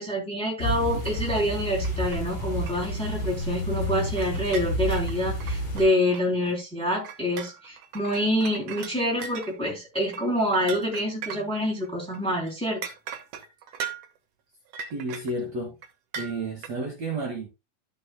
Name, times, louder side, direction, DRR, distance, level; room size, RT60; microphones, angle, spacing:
voice 1, 0.0-12.9, equal, ahead, 2.6 m, -27 dB
sound 1, 0.6-5.8, equal, 30° left, 5.3 m, -30 dB
sound 2, 1.1-1.3 1.6-2.3 2.6-2.9 3.2-3.3 4.2-6.5 7.0-11.9 12.1-12.2 12.5-12.6 12.8-14.2 14.7-15.4 15.8-15.9 16.1-16.7, right 7 dB, 75° right, 1.4 m, -39 dB
voice 2, 14.9-15.7 16.2-17.5, right 2 dB, 55° right, 2.4 m, -31 dB
13.5 x 6.3 x 2.3 m
omnidirectional pair, 4.3 m